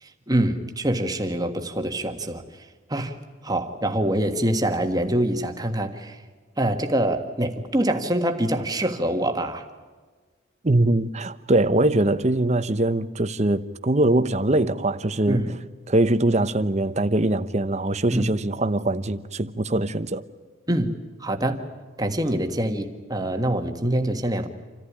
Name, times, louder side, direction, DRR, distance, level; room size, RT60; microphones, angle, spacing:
voice 1, 0.0-2.4 2.9-6.2 6.6-9.6 15.3-15.5 18.1-18.3 20.7-21.6 22.0-24.5, right 1 dB, 20° right, 1.6 m, -25 dB
voice 2, 10.6-15.5 15.9-20.2, right 1 dB, 35° right, 0.9 m, -22 dB
27.5 x 15.0 x 10.0 m
head